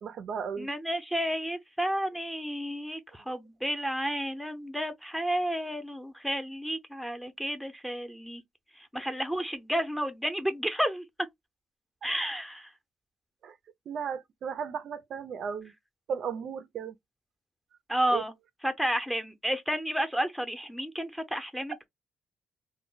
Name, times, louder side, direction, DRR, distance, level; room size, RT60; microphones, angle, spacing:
voice 1, 0.0-0.7 13.4-13.5 13.9-15.7 16.1-16.9 18.1-18.2, right 7 dB, 65° right, 0.4 m, -35 dB
voice 2, 0.6-8.4 8.9-11.0 12.0-12.7 17.9-18.3 18.6-21.9, equal, ahead, 0.6 m, -31 dB
2.1 x 2.1 x 3.8 m
cardioid pair, 90°, 0 cm